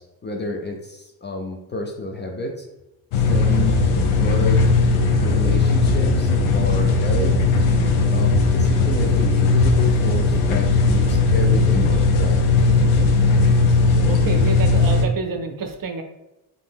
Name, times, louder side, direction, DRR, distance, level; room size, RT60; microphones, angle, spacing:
voice 1, 0.0-2.7 3.1-4.7 5.1-7.4 8.1-12.4, left 2 dB, 25° left, 1 dB, 0.4 m, -30 dB
sound 1, 3.1-15.1, left 3 dB, 75° left, 0.6 m, -17 dB
voice 2, 14.1-16.0, right 4 dB, 45° right, 6 dB, 0.5 m, -28 dB
2.6 x 2.0 x 3.4 m, 0.95 s
supercardioid pair, 55°, 48 cm